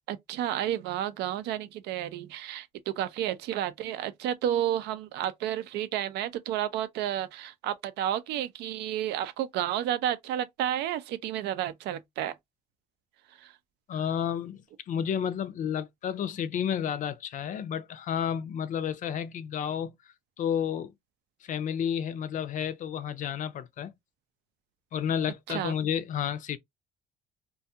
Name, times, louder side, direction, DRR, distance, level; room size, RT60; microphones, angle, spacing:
voice 1, 0.1-12.3 13.4-13.5 25.5-25.7, right 11 dB, 85° right, 0.5 m, -31 dB
voice 2, 13.9-14.6 14.9-19.9 20.4-20.9 21.4-23.9 24.9-26.6, left 8 dB, 50° left, 0.4 m, -31 dB
2.5 x 2.3 x 2.7 m
cardioid pair, 110°, 17 cm